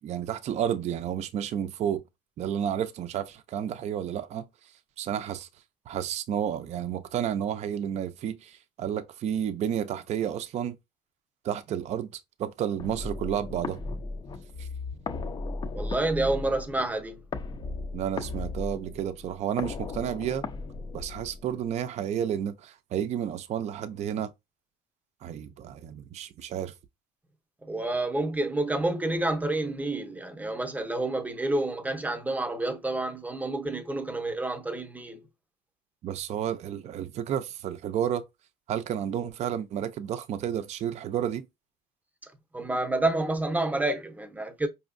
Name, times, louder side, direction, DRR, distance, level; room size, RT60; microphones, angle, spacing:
voice 1, 0.0-2.0 2.4-4.4 5.0-5.5 5.9-10.8 11.4-12.1 12.4-13.8 14.6-14.7 17.9-20.4 20.9-24.3 25.2-26.7 36.0-38.2 38.7-41.4, right 9 dB, 45° right, 0.5 m, -31 dB
sound 1, 12.8-21.8, left 3 dB, 30° left, 0.4 m, -36 dB
voice 2, 15.7-17.2 27.6-35.2 42.2-44.7, right 2 dB, 10° right, 0.7 m, -29 dB
5.1 x 2.7 x 2.5 m
cardioid pair, 140°, 16 cm